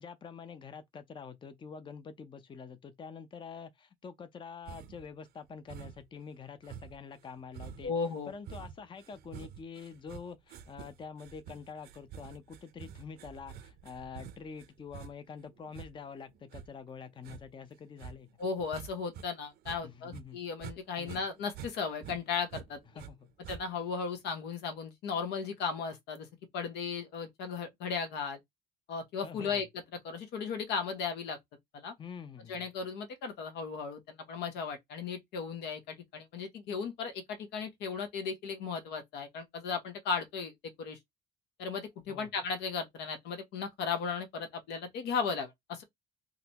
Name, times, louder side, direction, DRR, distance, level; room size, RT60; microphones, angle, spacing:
voice 1, 0.0-7.9 8.3-18.3 19.8-20.4 21.0-21.2 22.9-23.3 29.2-29.6 32.0-32.7 42.1-42.3, left 6 dB, 30° left, 0.6 m, -46 dB
sound 1, 4.7-5.1 5.7-6.2 6.6-19.3 19.6-20.8 21.0-23.1 23.4-23.9, right 8 dB, 70° right, 0.6 m, -48 dB
voice 2, 7.8-8.3 18.4-22.8 23.5-26.3 26.5-28.4 28.9-29.7 30.0-31.4 31.7-31.9 32.5-41.0 41.6-45.8, left 5 dB, 85° left, 1.0 m, -36 dB
3.8 x 2.2 x 2.9 m
cardioid pair, 110°, 17 cm